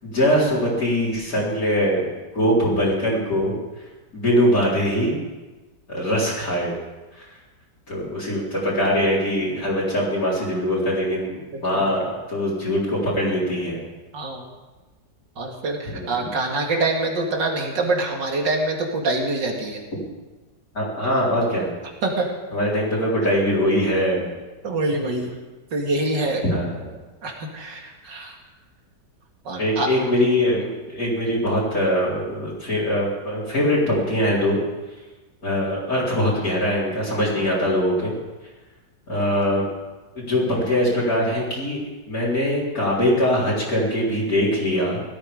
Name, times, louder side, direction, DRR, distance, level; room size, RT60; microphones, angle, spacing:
voice 1, 0.0-2.1 2.3-3.6 4.1-5.2 5.9-6.8 7.2-7.3 7.9-13.8 15.9-16.3 20.7-21.7 22.5-24.3 26.4-26.7 29.6-34.6 35.4-38.1 39.1-39.7 40.2-45.0, equal, 50° left, -7 dB, 4.5 m, -22 dB
voice 2, 11.5-11.9 14.1-14.5 15.4-19.8 22.0-22.3 24.6-25.3 25.7-26.4 27.2-28.3 29.4-29.9, right 2 dB, 80° right, 1 dB, 2.9 m, -25 dB
17.5 x 12.5 x 5.3 m, 1.2 s
omnidirectional pair, 1.9 m